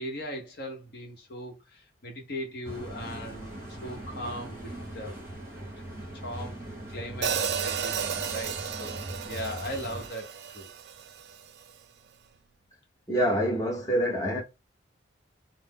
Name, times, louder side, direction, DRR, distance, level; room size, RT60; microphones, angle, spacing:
voice 1, 0.0-5.2 5.7-5.8 6.2-9.0 9.3-10.7, equal, 55° left, 0.9 m, -39 dB
sound 1, 2.6-10.1, right 1 dB, 10° right, 0.9 m, -41 dB
Hi-hat, 7.2-11.4, right 7 dB, 55° right, 0.3 m, -33 dB
voice 2, 13.1-14.4, equal, 20° left, 0.7 m, -26 dB
2.4 x 2.0 x 3.5 m
head